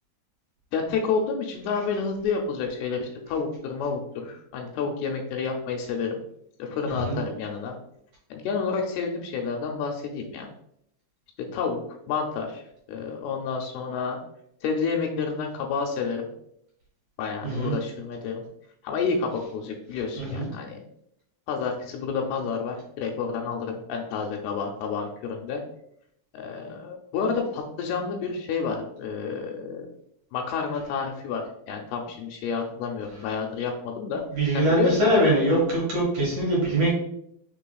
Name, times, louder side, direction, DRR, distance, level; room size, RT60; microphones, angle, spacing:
voice 1, 0.7-6.2 6.6-7.8 8.3-10.5 11.5-11.8 12.1-12.6 12.9-14.2 14.6-16.3 17.2-18.4 18.8-20.8 21.5-25.6 26.3-29.9 30.3-34.2 34.5-35.0, left 5 dB, 80° left, 1 dB, 2.4 m, -29 dB
voice 2, 6.9-7.2 17.4-17.8 20.2-20.5 34.3-36.9, right 1 dB, 60° right, -5 dB, 2.4 m, -23 dB
6.1 x 3.5 x 2.3 m, 0.73 s
omnidirectional pair, 4.7 m